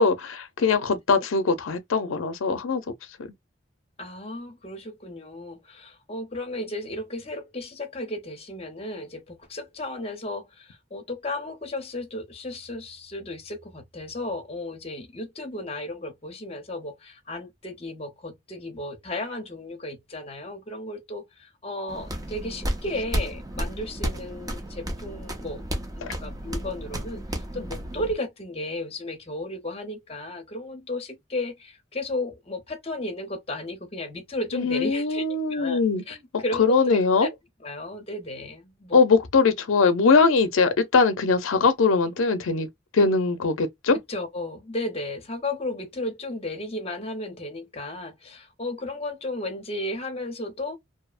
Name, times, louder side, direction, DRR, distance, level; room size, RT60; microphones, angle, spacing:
voice 1, 0.0-2.8 26.0-26.1 34.5-36.0 36.3-37.3 38.9-42.7 42.9-44.0, left 4 dB, 80° left, 0.5 m, -21 dB
voice 2, 4.0-25.6 26.0-37.3 37.6-39.0 44.1-50.8, left 1 dB, 30° left, 0.6 m, -34 dB
sound 1, 21.9-28.1, equal, 20° right, 0.5 m, -32 dB
2.7 x 2.0 x 2.3 m
head